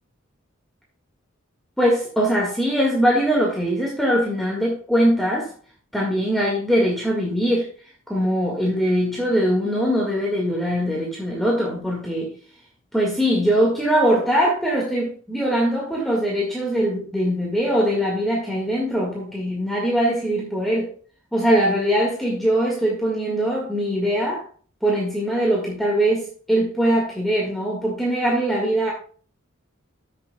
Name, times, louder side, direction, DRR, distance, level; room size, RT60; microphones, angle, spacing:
voice 1, 1.8-5.5 5.9-7.7 8.1-12.3 12.9-20.9 21.3-24.4 24.8-28.9, equal, ahead, -3 dB, 1.8 m, -21 dB
14.5 x 6.6 x 2.2 m, 0.43 s
head